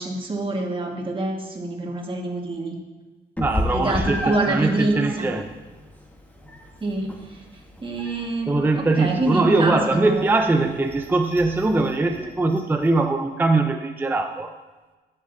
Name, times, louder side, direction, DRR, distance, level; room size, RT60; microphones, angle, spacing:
voice 1, 0.0-2.8 3.7-5.3 6.8-7.1 7.8-10.3, right 2 dB, 25° right, 0 dB, 1.7 m, -26 dB
Meow, 3.4-13.0, left 1 dB, 10° left, 1.3 m, -35 dB
voice 2, 3.4-5.5 8.5-14.5, right 3 dB, 10° right, 5 dB, 0.5 m, -21 dB
12.5 x 7.6 x 2.7 m, 1.2 s
cardioid pair, 90°, 20 cm